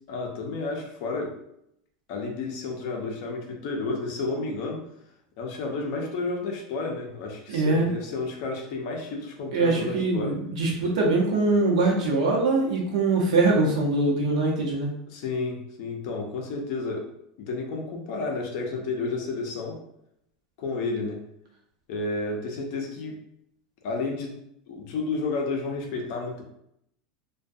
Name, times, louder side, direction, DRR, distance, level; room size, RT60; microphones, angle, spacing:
voice 1, 0.1-1.3 2.1-4.8 5.4-10.3 15.1-17.1 17.4-19.8 20.6-21.2 21.9-23.2 23.8-24.3 24.7-26.4, left 3 dB, 40° left, 1 dB, 0.5 m, -31 dB
voice 2, 7.5-7.9 9.5-14.9, right 3 dB, 80° right, -2 dB, 0.8 m, -23 dB
2.3 x 2.2 x 2.6 m, 0.77 s
supercardioid pair, 180°, 3 cm